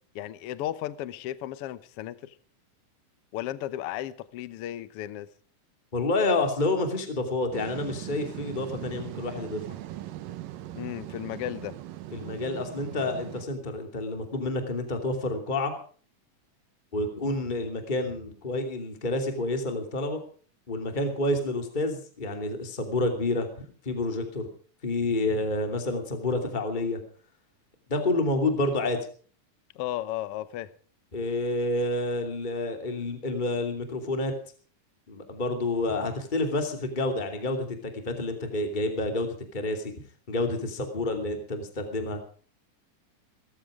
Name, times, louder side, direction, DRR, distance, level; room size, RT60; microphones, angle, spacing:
voice 1, 0.1-2.3 3.3-5.3 10.7-11.8 29.7-30.7, left 13 dB, 70° left, 1.4 m, -34 dB
voice 2, 5.9-9.6 12.1-15.7 16.9-20.2 20.7-23.5 23.8-24.5 24.8-27.0 27.9-29.0 31.1-34.3 35.1-39.9 40.3-42.2, left 2 dB, 15° left, 2.6 m, -29 dB
sound 1, 7.5-13.4, right 13 dB, 85° right, 2.7 m, -40 dB
18.5 x 14.5 x 5.1 m
omnidirectional pair, 3.8 m